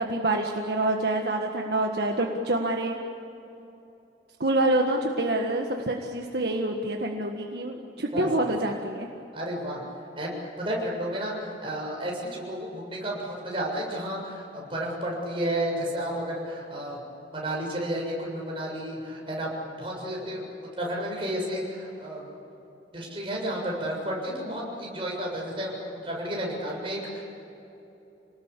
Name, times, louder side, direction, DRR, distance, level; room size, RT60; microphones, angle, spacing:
voice 1, 0.0-3.0 4.4-9.1, right 2 dB, 65° right, 2 dB, 1.7 m, -26 dB
voice 2, 9.3-9.8 10.2-17.0 17.3-19.5 19.8-20.4 20.8-22.3 22.9-27.3, right 1 dB, 30° right, -2 dB, 7.1 m, -32 dB
28.5 x 19.5 x 8.5 m, 3.0 s
head